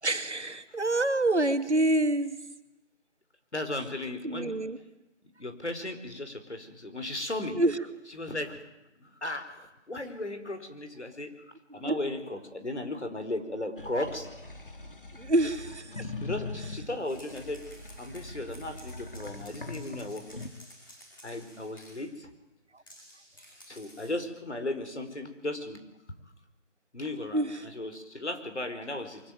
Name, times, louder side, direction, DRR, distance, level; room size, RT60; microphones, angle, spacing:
voice 1, 0.0-2.4 4.2-4.8 7.5-7.9 11.7-12.0 15.1-16.1 16.6-16.7 22.7-22.8 27.3-27.7, right 2 dB, 65° right, 8 dB, 2.5 m, -27 dB
voice 2, 3.5-4.5 5.4-7.6 8.2-8.6 9.0-11.3 11.7-14.3 16.2-17.7 18.0-20.4 21.2-22.3 23.7-25.8 26.9-29.2, left 2 dB, 65° left, 7 dB, 4.9 m, -36 dB
sound 1, 13.8-20.5, left 3 dB, 45° left, 2.6 m, -41 dB
sound 2, 17.0-22.1 22.9-24.2, equal, 15° left, 6.8 m, -53 dB
24.0 x 22.5 x 9.4 m, 0.96 s
figure-of-eight pair, 175°, 36 cm